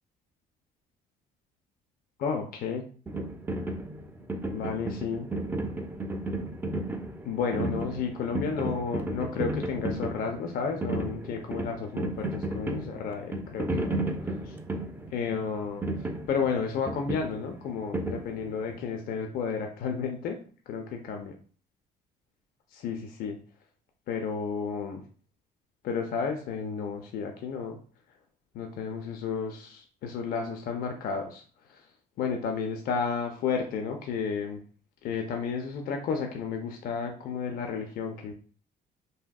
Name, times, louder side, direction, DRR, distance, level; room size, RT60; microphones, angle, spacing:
voice 1, 2.2-2.8 4.5-5.3 7.3-14.6 15.1-15.8 16.3-20.4 20.7-21.3 22.7-23.4 24.1-25.0 25.8-27.8 28.5-31.4 31.7-31.8 32.2-34.6 35.0-38.3, left 6 dB, 60° left, 3 dB, 0.5 m, -32 dB
sound 1, 3.1-18.8, right 1 dB, 10° right, 0.4 m, -34 dB
3.5 x 2.6 x 2.2 m, 0.42 s
cardioid pair, 110°, 17 cm